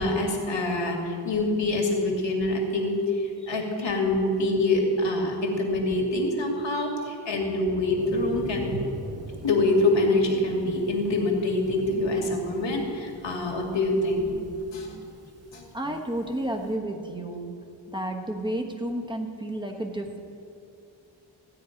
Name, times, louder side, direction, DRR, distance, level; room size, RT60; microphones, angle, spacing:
voice 1, 0.0-8.6 9.4-14.3 14.7-15.0 15.5-15.6, left 2 dB, 70° left, 1 dB, 2.3 m, -25 dB
Thunder, 8.0-16.7, right 2 dB, 30° right, 1.3 m, -42 dB
voice 2, 15.7-17.5 17.9-20.2, right 1 dB, 10° right, 3 dB, 1.2 m, -31 dB
15.0 x 9.6 x 5.2 m, 2.6 s
wide cardioid pair, 120°, 46 cm